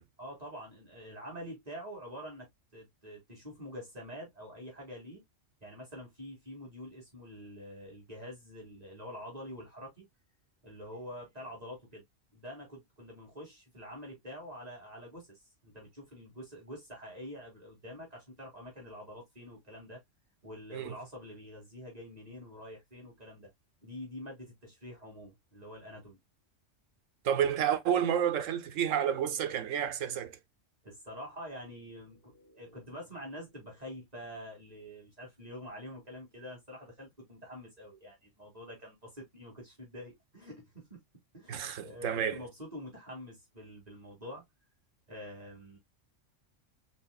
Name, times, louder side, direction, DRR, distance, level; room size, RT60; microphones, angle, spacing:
voice 1, 0.2-5.2 5.6-10.0 10.6-12.0 12.3-20.0 20.4-23.5 23.8-26.2 30.8-41.0 41.3-44.4 45.1-45.8, equal, 30° right, 2.7 m, -46 dB
voice 2, 27.2-30.4 41.5-42.4, right 9 dB, 85° right, 1.2 m, -30 dB
5.4 x 4.2 x 2.3 m
omnidirectional pair, 1.3 m